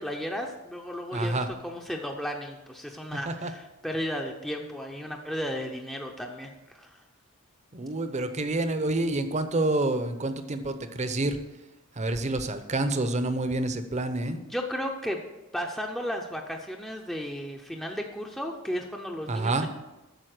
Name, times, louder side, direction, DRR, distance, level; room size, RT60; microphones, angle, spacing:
voice 1, 0.0-7.0 8.1-8.3 14.3-15.2 15.5-19.7, equal, ahead, 0 dB, 0.6 m, -34 dB
voice 2, 1.1-1.5 3.3-3.5 7.7-11.4 12.0-14.4 19.3-19.7, right 2 dB, 30° right, 9 dB, 0.8 m, -28 dB
9.2 x 6.8 x 6.5 m, 1.0 s
head